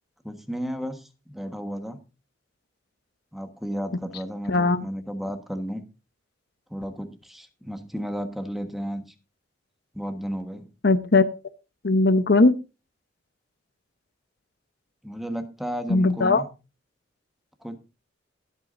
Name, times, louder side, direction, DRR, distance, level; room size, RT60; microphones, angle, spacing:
voice 1, 0.2-2.0 3.3-5.8 6.7-9.1 9.9-10.7 15.0-16.5 17.6-17.8, equal, ahead, 7 dB, 1.3 m, -33 dB
voice 2, 4.5-4.8 10.8-11.3 11.8-12.5 15.9-16.4, left 3 dB, 55° left, 11 dB, 0.8 m, -19 dB
21.0 x 8.2 x 2.6 m, 0.30 s
head